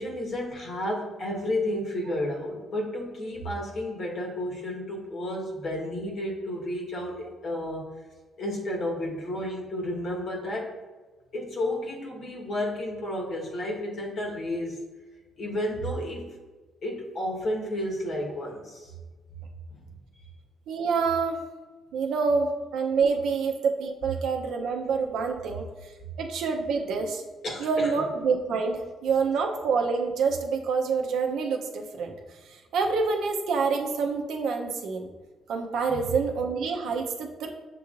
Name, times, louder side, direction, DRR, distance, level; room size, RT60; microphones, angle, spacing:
voice 1, 0.0-7.9 8.4-10.7 11.3-14.8 15.4-16.4 16.8-18.9 19.7-19.8 27.4-27.9, left 1 dB, 60° left, -1 dB, 1.2 m, -32 dB
voice 2, 20.7-21.4 21.9-25.6 26.2-27.2 27.6-32.1 32.5-35.1 35.5-37.5, right 5 dB, 80° right, 3 dB, 0.6 m, -27 dB
6.7 x 3.1 x 2.4 m, 1.3 s
cardioid pair, 80°, 0 cm